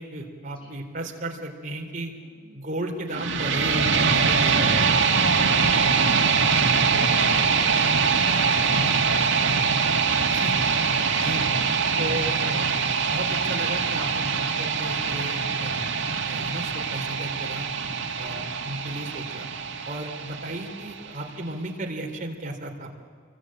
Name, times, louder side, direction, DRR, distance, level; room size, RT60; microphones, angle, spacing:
voice 1, 0.0-2.1 2.5-4.7 10.3-10.7 11.2-11.5 12.0-15.9 16.2-17.7 18.2-19.5 19.9-22.9, right 1 dB, 40° right, 2 dB, 3.6 m, -34 dB
voice 2, 2.2-2.6 5.0-6.0 6.7-9.9 11.1-11.5 18.1-18.3, left 1 dB, 25° left, -1 dB, 7.9 m, -43 dB
sound 1, 3.1-21.1, right 5 dB, 65° right, 2.4 m, -23 dB
28.5 x 23.5 x 8.8 m, 2.1 s
head